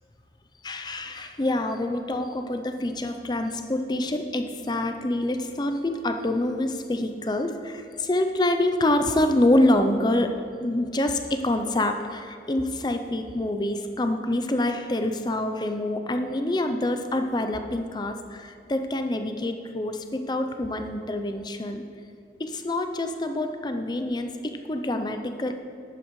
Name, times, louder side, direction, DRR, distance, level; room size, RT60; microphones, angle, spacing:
voice 1, 0.6-10.3 10.6-21.8 22.4-25.5, left 1 dB, 25° left, 6 dB, 0.5 m, -26 dB
11.5 x 8.7 x 3.1 m, 2.4 s
head